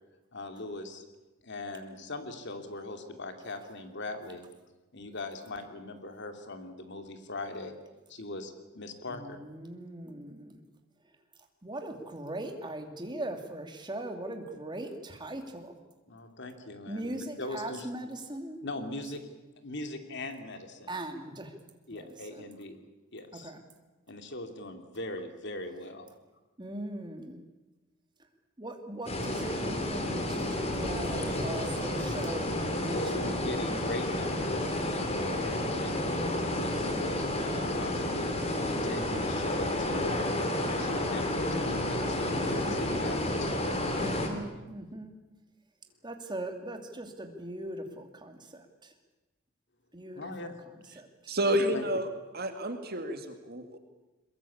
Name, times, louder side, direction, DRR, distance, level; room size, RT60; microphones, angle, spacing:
voice 1, 0.3-1.0 1.4-4.4 4.9-7.7 8.1-9.4 16.1-17.9 18.6-19.2 19.6-20.9 21.9-22.8 23.1-23.5 24.1-26.1 32.8-36.1 36.4-38.4 38.8-40.3 40.7-43.5 44.5-44.7 50.1-50.6 51.7-51.8, left 2 dB, 55° left, 6 dB, 2.7 m, -40 dB
voice 2, 9.1-10.6 11.6-15.8 16.9-18.6 20.9-21.5 21.9-22.4 23.3-23.6 26.6-27.4 28.6-33.0 42.4-43.0 44.0-45.2 46.0-48.9 49.9-50.2 51.0-51.1, right 1 dB, 20° right, 4 dB, 2.6 m, -40 dB
sound 1, 29.1-44.3, left 1 dB, 30° left, 3.4 m, -31 dB
voice 3, 51.3-52.1 52.3-53.8, equal, 45° right, 7 dB, 2.2 m, -30 dB
22.5 x 21.5 x 8.7 m, 1.1 s
head